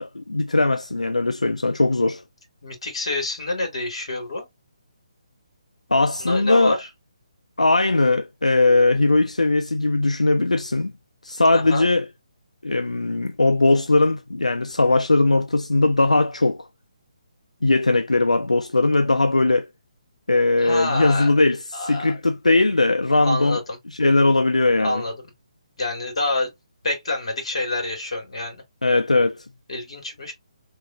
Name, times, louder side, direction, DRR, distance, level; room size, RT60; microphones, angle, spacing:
voice 1, 0.0-2.2 5.9-6.8 7.6-10.9 11.2-12.1 12.6-16.7 17.6-19.7 20.3-23.6 23.9-25.0 28.8-29.5, left 2 dB, 80° left, 0.4 m, -19 dB
voice 2, 2.6-4.5 6.2-6.9 11.5-11.9 20.6-21.3 21.7-22.2 23.1-23.8 24.8-25.1 25.8-26.5 26.8-28.6 29.7-30.3, left 2 dB, 55° left, 2.6 m, -27 dB
4.9 x 3.2 x 2.6 m
figure-of-eight pair, 145°, 4 cm